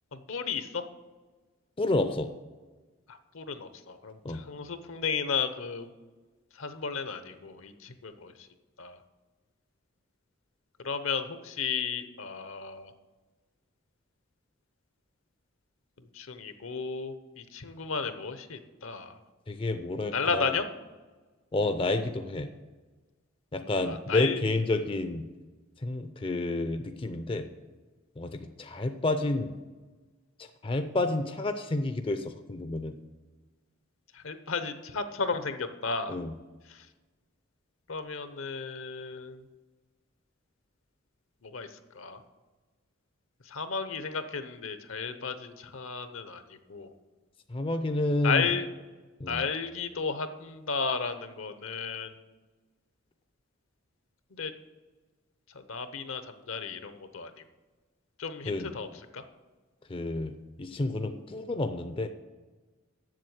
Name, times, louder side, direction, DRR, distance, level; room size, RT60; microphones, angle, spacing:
voice 1, 0.1-0.9 3.1-5.9 6.5-8.5 8.8-9.0 10.8-12.9 16.1-19.2 20.1-20.7 23.9-24.4 34.1-36.2 36.7-36.9 37.9-39.4 41.4-41.7 41.9-42.2 43.5-46.9 48.2-48.6 49.3-52.2 54.3-54.5 55.5-57.3 58.2-58.9 59.1-59.2, left 5 dB, 70° left, 10 dB, 0.8 m, -34 dB
voice 2, 1.8-2.3 4.2-4.4 19.5-20.6 21.5-22.5 23.5-25.2 25.8-27.5 28.2-29.5 30.4-33.0 36.1-36.3 47.5-48.5 49.2-49.4 58.5-58.7 59.9-60.3 60.6-62.1, left 2 dB, 25° left, 9 dB, 0.4 m, -30 dB
7.6 x 7.2 x 7.8 m, 1.3 s
head